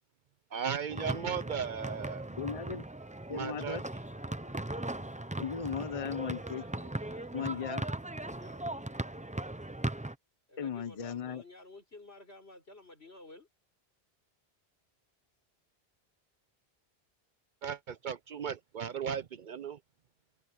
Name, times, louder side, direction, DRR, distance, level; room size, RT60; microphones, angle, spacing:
voice 1, 0.5-2.2 3.3-3.8 17.6-19.8, right 7 dB, 55° right, 0.7 m, -36 dB
sound 1, 0.9-10.2, right 1 dB, 10° right, 0.5 m, -38 dB
Wind instrument woodwind instrument, 1.9-8.5, left 2 dB, 65° left, 4.5 m, -61 dB
voice 2, 2.4-2.8 3.3-3.8 5.4-6.6 7.3-7.8 10.6-11.4, left 7 dB, 40° left, 0.8 m, -36 dB
voice 3, 6.5-7.9 8.2-9.5 10.5-13.5, left 2 dB, 80° left, 5.6 m, -54 dB
omnidirectional pair, 1.1 m